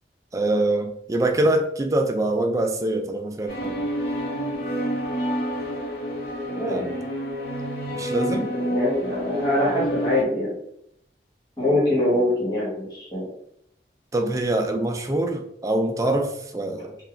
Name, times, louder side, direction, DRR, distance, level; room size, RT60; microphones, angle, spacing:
voice 1, 0.3-3.8 6.7-7.0 7.9-8.5 14.1-17.0, right 1 dB, 20° right, 4 dB, 0.4 m, -24 dB
sound 1, 3.5-10.2, equal, 55° left, 1.1 m, -28 dB
voice 2, 6.5-6.9 8.5-10.5 11.6-13.3, left 1 dB, 25° left, -7 dB, 1.6 m, -24 dB
4.6 x 2.4 x 3.4 m, 0.73 s
head